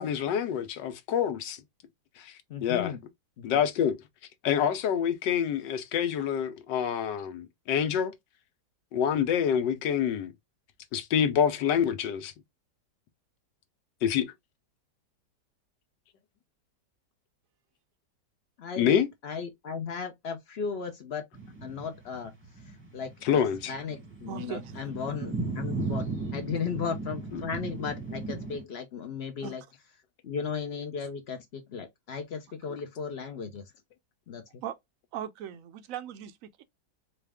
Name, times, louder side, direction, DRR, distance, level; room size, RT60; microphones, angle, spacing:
voice 1, 0.0-1.6 2.2-2.3 2.6-2.9 3.4-4.0 4.4-8.1 8.9-10.3 10.9-12.3 14.0-14.3 18.8-19.1 23.2-23.7 27.3-27.4, left 8 dB, 90° left, 1.4 m, -27 dB
voice 2, 2.5-3.0 3.4-3.6 18.6-21.2 21.6-22.3 22.6-26.1 26.3-29.6 30.2-33.6 34.3-34.4, left 6 dB, 60° left, 0.6 m, -36 dB
sound 1, 21.3-28.6, right 3 dB, 10° right, 0.8 m, -36 dB
voice 3, 24.3-24.7 29.4-29.5 34.6-34.8 35.1-36.6, right 10 dB, 70° right, 0.8 m, -38 dB
4.1 x 2.3 x 3.4 m
omnidirectional pair, 1.8 m